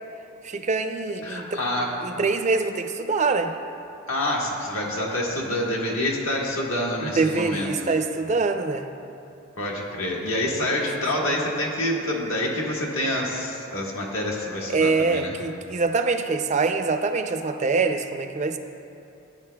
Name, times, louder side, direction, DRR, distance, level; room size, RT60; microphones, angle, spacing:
voice 1, 0.4-1.6 2.0-3.5 7.0-8.9 10.5-10.7 14.7-18.6, right 4 dB, 35° right, 7 dB, 0.4 m, -24 dB
voice 2, 1.2-1.9 4.1-7.7 9.6-15.3, left 1 dB, 70° left, -2 dB, 1.5 m, -27 dB
15.0 x 9.4 x 2.2 m, 2.8 s
head